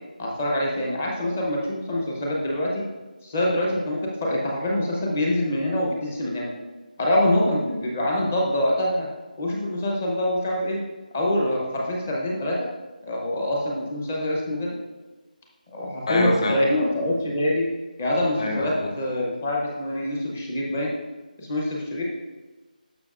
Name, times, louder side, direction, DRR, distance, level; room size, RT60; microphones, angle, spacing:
voice 1, 0.2-2.8 3.2-6.5 7.0-9.1 9.4-10.8 11.1-12.7 13.0-14.8 15.7-17.7 18.0-20.9 21.4-22.0, left 1 dB, 15° left, -2 dB, 0.7 m, -25 dB
voice 2, 16.1-16.6 18.4-18.9, left 1 dB, 35° left, 1 dB, 1.1 m, -25 dB
12.0 x 5.6 x 2.4 m, 1.2 s
figure-of-eight pair, 180°, 5 cm